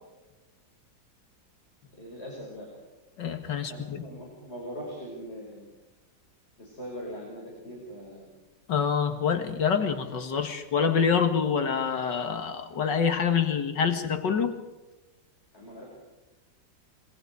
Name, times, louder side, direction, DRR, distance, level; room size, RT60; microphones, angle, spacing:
voice 1, 1.9-2.7 3.5-5.6 6.6-8.3 15.5-15.8, equal, 35° left, -3 dB, 6.2 m, -41 dB
voice 2, 3.2-4.0 8.7-14.6, left 6 dB, 75° left, 8 dB, 2.4 m, -26 dB
26.5 x 23.0 x 4.8 m, 1.1 s
omnidirectional pair, 2.0 m